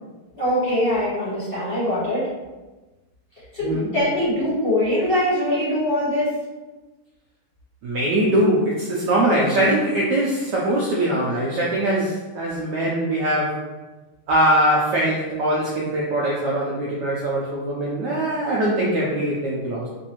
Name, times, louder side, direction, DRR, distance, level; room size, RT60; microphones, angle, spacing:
voice 1, 0.3-2.3 3.5-6.3, left 1 dB, 35° left, -10 dB, 0.9 m, -22 dB
voice 2, 3.6-3.9 7.8-13.7 14.3-19.9, right 1 dB, 75° right, -4 dB, 1.0 m, -22 dB
4.0 x 2.6 x 2.9 m, 1.2 s
omnidirectional pair, 2.3 m